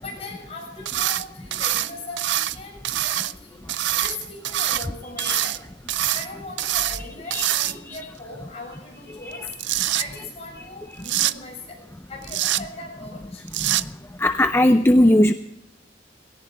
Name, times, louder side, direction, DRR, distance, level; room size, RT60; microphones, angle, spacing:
voice 1, 0.0-3.7 4.0-5.7 6.1-9.6 10.0-13.5, left 3 dB, 35° left, 0 dB, 7.6 m, -39 dB
sound 1, 0.8-1.2 1.5-2.6 2.8-3.3 3.7-4.9 5.2-5.6 5.9-6.3 6.6-7.0 7.3-8.0 9.3-10.0 11.0-11.3 12.2-12.6 13.5-13.8, right 13 dB, 90° right, 0.5 m, -24 dB
voice 2, 14.2-15.3, left 1 dB, 15° left, 9 dB, 0.5 m, -17 dB
19.0 x 17.5 x 3.7 m, 0.79 s
head